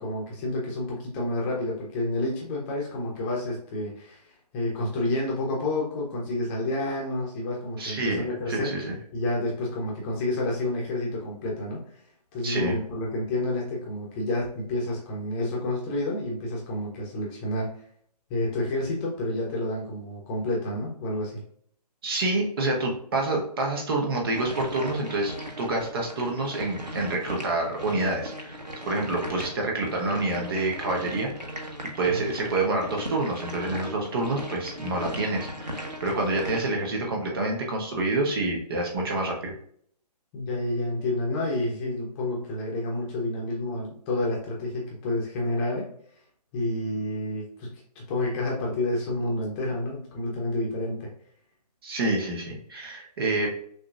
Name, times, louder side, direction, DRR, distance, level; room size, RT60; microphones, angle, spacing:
voice 1, 0.0-4.3 4.5-12.0 12.3-17.7 18.3-21.4 32.1-32.2 40.3-45.9 46.5-51.1, left 1 dB, 20° left, -3 dB, 1.0 m, -29 dB
voice 2, 7.8-9.0 12.4-12.8 22.0-28.6 28.9-31.3 32.0-39.5 51.8-53.5, right 2 dB, 35° right, 0 dB, 1.1 m, -27 dB
sound 1, 24.3-36.6, equal, 90° right, 1.3 m, -37 dB
6.3 x 3.0 x 2.4 m, 0.62 s
figure-of-eight pair, 135°, 21 cm